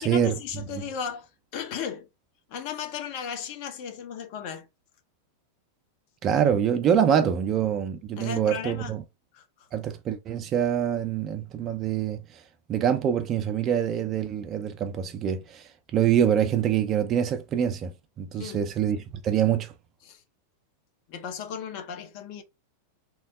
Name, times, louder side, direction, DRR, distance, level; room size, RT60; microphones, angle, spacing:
voice 1, 0.0-2.1 2.5-4.7 8.2-9.0 9.3-9.7 18.3-18.6 20.0-20.2 21.1-22.4, left 7 dB, 45° left, 0.7 m, -36 dB
voice 2, 6.2-9.0 9.7-12.2 12.7-15.6 15.9-17.9 18.2-19.7, right 9 dB, 30° right, 0.6 m, -25 dB
3.0 x 2.0 x 3.6 m
figure-of-eight pair, 90°, 0 cm